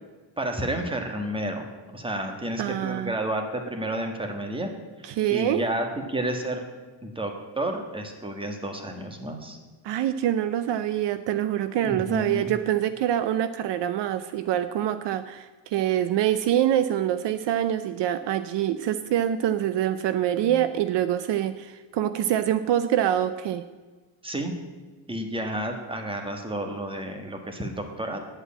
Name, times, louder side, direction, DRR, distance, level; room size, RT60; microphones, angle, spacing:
voice 1, 0.4-4.7 5.3-6.6 7.0-9.6 11.8-12.5 20.4-20.6 24.2-24.5 25.1-28.2, right 1 dB, 10° right, 4 dB, 1.6 m, -31 dB
voice 2, 2.6-3.1 5.0-5.7 9.8-23.6, right 11 dB, 65° right, 12 dB, 0.7 m, -25 dB
9.5 x 8.2 x 8.6 m, 1.3 s
cardioid pair, 140°, 46 cm